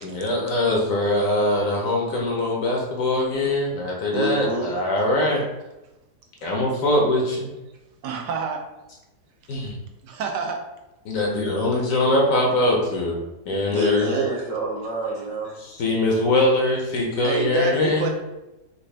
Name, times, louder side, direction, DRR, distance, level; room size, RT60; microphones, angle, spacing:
voice 1, 0.0-5.4 6.4-7.5 9.5-9.7 11.0-13.2 13.5-14.1 15.6-18.1, left 2 dB, 60° left, -1 dB, 1.0 m, -22 dB
voice 2, 4.1-4.7 13.7-15.6, right 2 dB, 60° right, -2 dB, 1.1 m, -26 dB
voice 3, 8.0-8.6 10.0-10.6 17.2-18.1, right 5 dB, 85° right, 2 dB, 1.3 m, -27 dB
4.2 x 2.6 x 3.2 m, 0.98 s
omnidirectional pair, 1.8 m